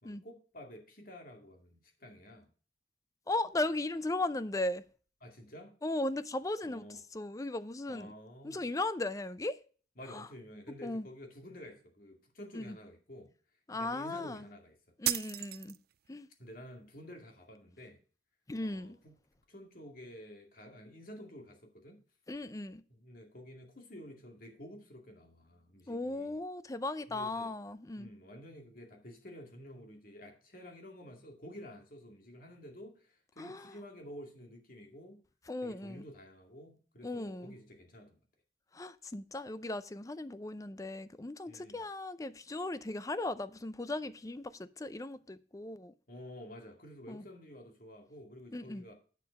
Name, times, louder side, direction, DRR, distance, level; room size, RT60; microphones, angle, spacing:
voice 1, 0.0-2.5 5.2-5.7 6.6-7.0 7.9-8.6 10.0-13.3 13.7-14.8 16.4-18.0 18.6-19.1 19.5-22.0 22.9-26.4 27.1-27.5 28.0-35.2 35.6-38.2 41.5-41.8 46.1-48.9, equal, 50° left, 2.3 m, -50 dB
voice 2, 3.3-4.8 5.8-8.1 8.4-9.6 10.1-10.3 10.8-11.1 12.5-12.8 13.7-14.5 15.0-15.8 16.1-16.3 18.5-19.0 22.3-22.8 25.9-28.1 33.4-33.7 35.5-36.0 37.0-37.5 38.7-45.9 47.1-47.2 48.5-48.8, left 2 dB, 20° left, 0.5 m, -37 dB
sound 1, 15.0-16.1, right 15 dB, 55° right, 0.4 m, -34 dB
8.2 x 7.0 x 5.2 m
head